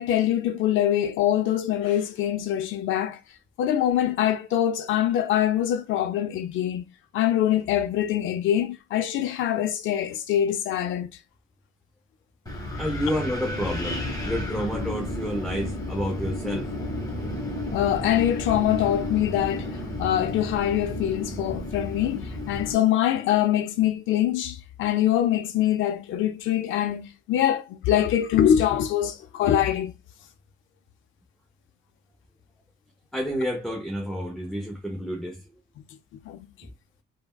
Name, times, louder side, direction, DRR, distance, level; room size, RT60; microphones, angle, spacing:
voice 1, 0.0-3.2 3.6-11.1 17.7-29.9 36.3-36.5, left 11 dB, 80° left, 0.4 m, -24 dB
Wind, 12.5-22.7, left 1 dB, 20° left, 1.1 m, -32 dB
voice 2, 12.8-16.7 33.1-35.4, equal, ahead, 0.6 m, -30 dB
3.4 x 2.1 x 2.2 m
cardioid pair, 90°, 20 cm